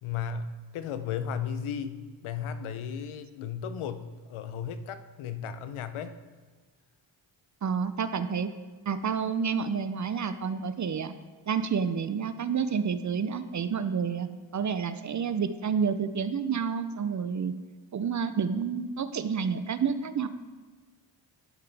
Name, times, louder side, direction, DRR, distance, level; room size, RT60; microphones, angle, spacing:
voice 1, 0.0-6.2, left 7 dB, 80° left, 11 dB, 0.7 m, -35 dB
voice 2, 7.6-8.5 8.9-11.1 11.5-17.5 17.9-20.3, right 6 dB, 40° right, 12 dB, 0.5 m, -29 dB
11.5 x 5.7 x 3.4 m, 1.4 s
cardioid pair, 65°, 49 cm